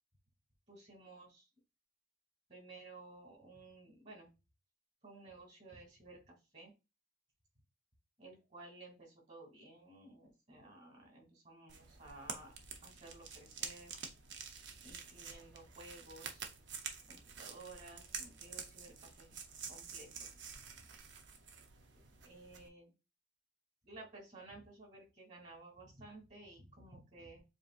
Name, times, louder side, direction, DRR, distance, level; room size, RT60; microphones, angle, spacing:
voice 1, 0.7-1.5 2.5-4.3 5.0-6.7 8.2-12.5 12.8-13.9 14.8-16.5 17.1-19.4 19.7-20.3 20.5-20.6 22.2-22.9 23.8-27.4, right 2 dB, 40° right, 0 dB, 2.3 m, -55 dB
sound 1, 11.7-22.7, right 6 dB, 70° right, 0.7 m, -48 dB
7.2 x 2.7 x 2.5 m, 0.27 s
head